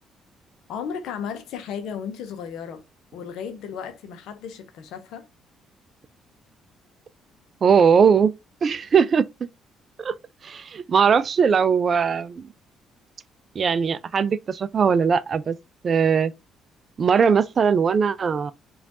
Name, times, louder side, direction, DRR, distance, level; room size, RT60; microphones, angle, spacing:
voice 1, 0.7-2.8 3.1-5.2, left 7 dB, 65° left, 0.6 m, -34 dB
voice 2, 7.6-8.3 8.6-9.2 10.0-10.1 10.4-12.5 13.6-15.6 15.8-16.3 17.0-18.5, right 6 dB, 45° right, 0.3 m, -20 dB
4.9 x 2.4 x 2.8 m
figure-of-eight pair, 45°, 0 cm